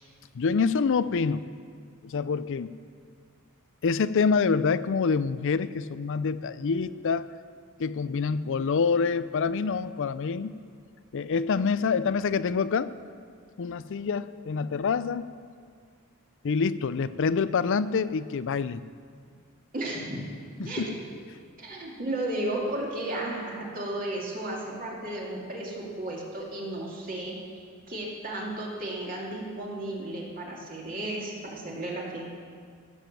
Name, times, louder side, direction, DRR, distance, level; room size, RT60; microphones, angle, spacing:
voice 1, 0.3-1.4 2.0-2.7 3.8-7.3 7.8-10.5 11.1-12.9 13.6-15.3 16.4-18.8 20.6-20.9, left 5 dB, 60° left, 16 dB, 0.4 m, -26 dB
voice 2, 19.7-20.1 20.6-20.8 21.6-27.4 27.9-32.3, right 1 dB, 40° right, -3 dB, 2.6 m, -34 dB
16.0 x 7.2 x 7.4 m, 2.1 s
head